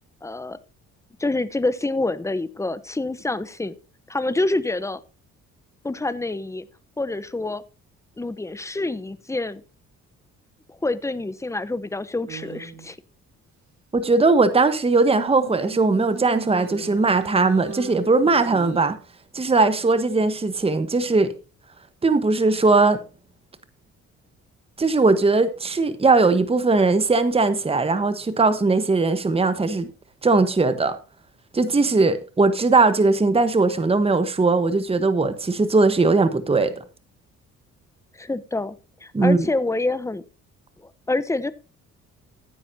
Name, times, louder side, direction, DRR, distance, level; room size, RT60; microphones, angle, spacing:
voice 1, 0.2-0.6 1.2-3.7 4.1-5.0 5.8-6.7 7.0-7.6 8.2-9.6 10.7-13.0 38.1-38.8 39.0-40.2 40.8-41.5, left 2 dB, 10° left, 0.9 m, -27 dB
sound 1, 12.3-12.9 15.0-18.8, right 6 dB, 70° right, 3.1 m, -37 dB
voice 2, 13.9-19.0 19.3-21.3 22.0-23.0 24.8-29.9 30.2-31.0 31.5-36.7 39.1-39.5, right 3 dB, 20° right, 1.2 m, -19 dB
15.5 x 10.0 x 2.8 m
cardioid pair, 90°, 30 cm